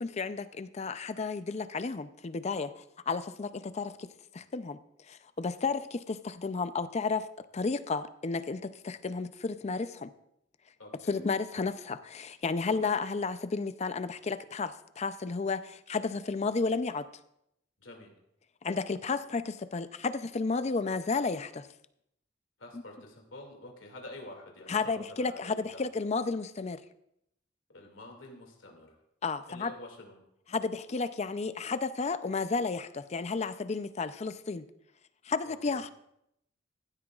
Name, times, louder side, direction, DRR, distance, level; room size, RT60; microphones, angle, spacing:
voice 1, 0.0-4.1 4.3-4.8 5.1-7.3 7.5-10.1 11.1-17.1 18.6-21.7 22.7-22.8 24.7-26.8 29.2-29.7 30.5-34.6 35.3-35.9, left 4 dB, 35° left, 13 dB, 0.5 m, -32 dB
voice 2, 10.8-11.2 12.7-12.8 17.8-18.1 22.6-25.8 27.7-28.9 29.5-30.2 35.4-35.8, left 2 dB, 90° left, 2 dB, 2.3 m, -48 dB
15.5 x 12.5 x 2.4 m, 0.78 s
head